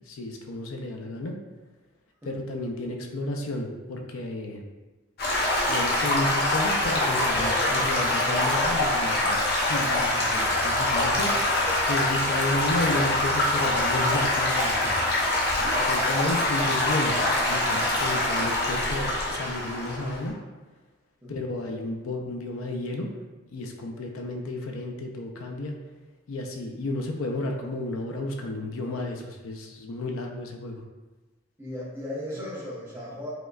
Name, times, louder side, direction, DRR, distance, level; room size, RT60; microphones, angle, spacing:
voice 1, 0.1-1.4 2.3-4.6 5.7-11.3 11.8-14.9 15.8-20.4 21.3-23.1 23.5-25.8 26.3-30.8, left 1 dB, 90° left, 2 dB, 0.5 m, -32 dB
Stream / Gurgling / Trickle dribble, 5.2-20.3, left 1 dB, 50° left, 0.7 m, -24 dB
voice 2, 31.6-33.3, left 1 dB, 10° right, -7 dB, 0.8 m, -37 dB
4.7 x 2.2 x 2.3 m, 1.2 s
head